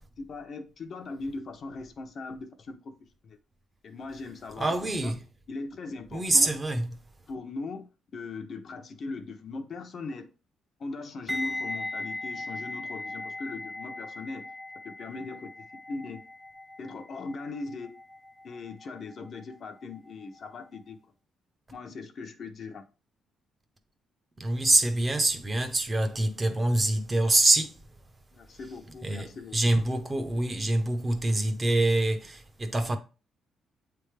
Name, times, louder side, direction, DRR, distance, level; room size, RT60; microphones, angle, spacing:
voice 1, 0.2-3.4 3.8-5.1 5.5-6.5 7.3-7.9 8.1-10.3 10.8-14.5 14.8-16.2 16.8-18.0 18.4-21.0 21.7-22.9 28.3-29.8, left 3 dB, 45° left, 0.8 m, -39 dB
voice 2, 4.6-5.2 6.1-6.9 24.4-27.7 29.0-33.0, right 2 dB, 20° right, 0.8 m, -25 dB
sound 1, 11.3-20.2 20.5-20.8, left 2 dB, ahead, 0.4 m, -39 dB
8.2 x 3.4 x 3.3 m
cardioid pair, 140°, 0 cm